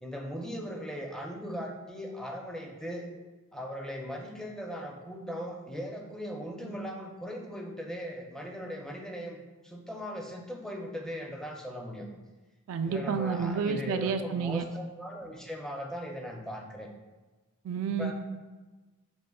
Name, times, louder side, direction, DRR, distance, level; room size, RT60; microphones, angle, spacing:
voice 1, 0.0-3.1 3.5-9.4 9.6-12.1 12.8-16.9 18.0-18.1, equal, 5° left, 0 dB, 0.4 m, -39 dB
voice 2, 12.7-14.6 17.6-18.1, right 5 dB, 70° right, 8 dB, 0.3 m, -30 dB
6.2 x 2.8 x 2.2 m, 1.2 s
head